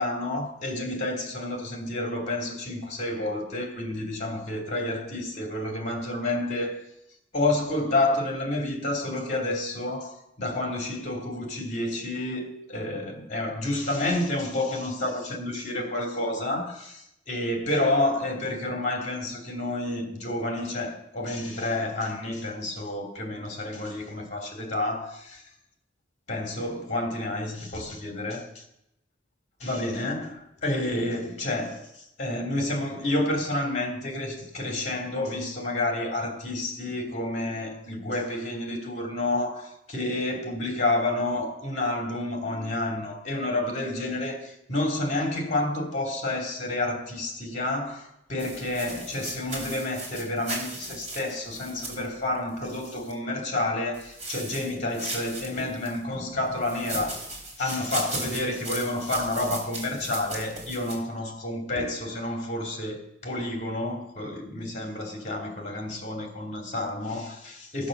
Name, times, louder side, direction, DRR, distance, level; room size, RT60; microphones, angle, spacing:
voice 1, 0.0-6.8 7.3-25.4 26.3-28.6 29.6-31.9 32.2-57.2 57.6-67.9, left 2 dB, 40° left, 3.0 m, -29 dB
sound 1, 48.4-53.1 53.9-56.0 56.6-61.0, right 2 dB, 40° right, 4.4 m, -37 dB
14.5 x 7.4 x 6.7 m
head